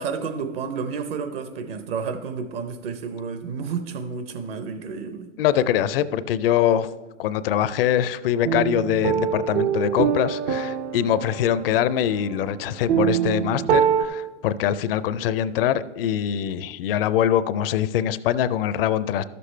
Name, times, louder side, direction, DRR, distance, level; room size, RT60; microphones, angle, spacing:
voice 1, 0.0-5.3, right 5 dB, 50° right, 0.8 m, -31 dB
voice 2, 5.4-6.9 7.2-19.2, left 10 dB, 50° left, 0.5 m, -23 dB
sound 1, 8.4-14.1, right 8 dB, 30° right, 0.4 m, -24 dB
12.5 x 6.8 x 3.2 m
hypercardioid pair, 115°, 37 cm